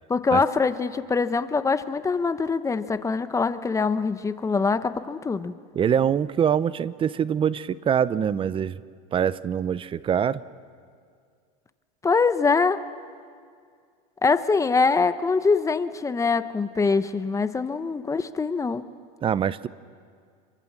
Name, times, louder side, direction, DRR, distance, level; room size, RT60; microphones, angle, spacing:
voice 1, 0.1-5.5 12.0-12.8 14.2-18.8, left 4 dB, 15° left, 12 dB, 0.9 m, -23 dB
voice 2, 5.7-8.8 9.1-10.4 19.2-19.7, right 8 dB, 25° right, 17 dB, 0.7 m, -24 dB
27.0 x 24.0 x 7.4 m, 2.1 s
supercardioid pair, 110°, 20 cm